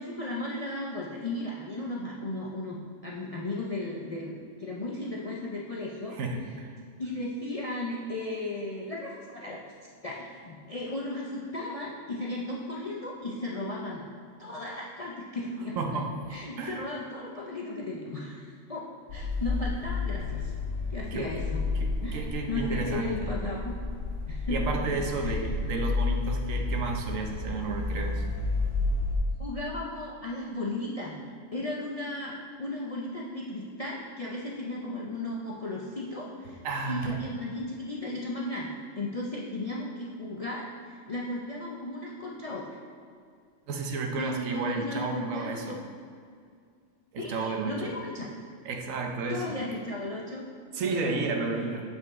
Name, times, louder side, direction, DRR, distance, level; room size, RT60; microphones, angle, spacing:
voice 1, 0.0-4.3 4.6-6.2 7.0-9.6 10.0-14.0 14.4-15.8 16.3-20.5 20.9-21.6 22.0-23.7 24.3-24.8 25.2-25.3 29.4-31.2 31.5-36.6 36.9-42.7 44.2-45.8 47.2-48.3 49.3-50.4 50.9-51.8, left 2 dB, 45° left, -4 dB, 0.4 m, -35 dB
voice 2, 6.1-6.7 15.8-16.1 16.6-16.8 21.1-21.3 21.8-23.3 24.5-28.2 36.6-37.2 43.7-45.8 47.1-47.9 48.6-49.6 50.7-51.8, right 3 dB, 75° right, 2 dB, 1.1 m, -32 dB
sound 1, 19.1-29.2, left 3 dB, 65° left, 1.1 m, -31 dB
7.1 x 5.3 x 3.6 m, 2.2 s
omnidirectional pair, 1.4 m